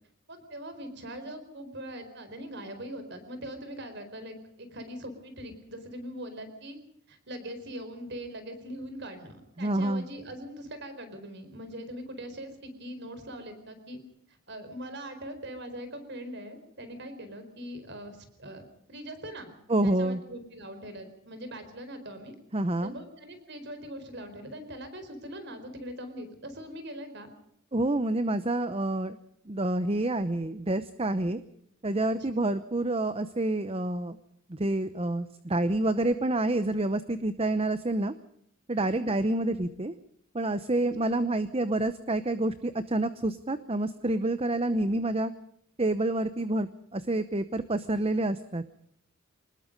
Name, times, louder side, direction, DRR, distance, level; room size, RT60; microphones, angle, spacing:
voice 1, 0.3-6.8 7.1-14.0 14.3-19.6 19.8-22.3 22.8-27.3 32.2-32.5 38.7-39.0 40.7-41.3, equal, 50° right, 9 dB, 4.6 m, -42 dB
voice 2, 9.6-10.0 19.7-20.2 22.5-22.9 27.7-29.2 29.5-31.4 31.8-34.2 34.5-38.1 38.7-39.9 40.3-45.3 45.8-48.6, right 2 dB, 25° right, 12 dB, 0.8 m, -28 dB
25.0 x 20.0 x 5.3 m, 0.69 s
head